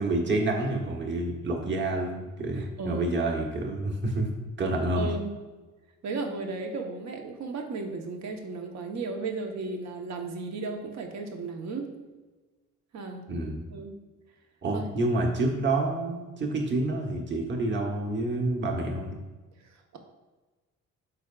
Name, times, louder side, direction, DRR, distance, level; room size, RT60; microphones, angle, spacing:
voice 1, 0.0-4.3 4.6-5.1 13.3-13.6 14.6-19.2, right 2 dB, 40° right, 0 dB, 1.4 m, -28 dB
voice 2, 2.5-3.1 5.0-5.3 6.0-11.9 12.9-13.3 13.7-13.9 14.7-14.9 19.6-20.0, right 3 dB, 65° right, 3 dB, 1.1 m, -35 dB
12.0 x 4.8 x 2.4 m, 1.2 s
cardioid pair, 90°, 30 cm